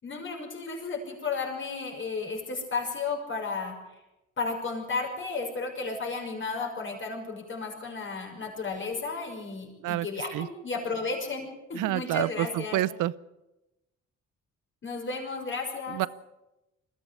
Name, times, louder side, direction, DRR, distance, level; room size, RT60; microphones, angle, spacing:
voice 1, 0.0-3.8 4.4-12.8 14.8-16.0, left 4 dB, 40° left, 6.0 m, -33 dB
voice 2, 11.7-13.1 15.9-16.1, right 15 dB, 90° right, 0.7 m, -28 dB
21.5 x 15.0 x 8.5 m
cardioid pair, 90°, 30 cm